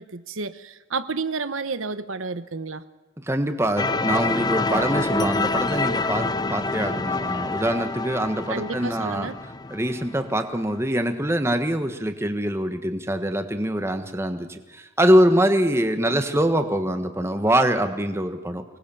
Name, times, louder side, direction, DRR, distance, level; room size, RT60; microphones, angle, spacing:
voice 1, 0.0-2.8 8.5-9.3, right 4 dB, 85° right, 12 dB, 1.1 m, -31 dB
voice 2, 3.2-9.3 9.7-18.6, right 1 dB, 15° right, 7 dB, 1.4 m, -24 dB
sound 1, 3.8-10.5, left 3 dB, 20° left, 0.6 m, -27 dB
25.0 x 19.0 x 7.1 m, 1.2 s
head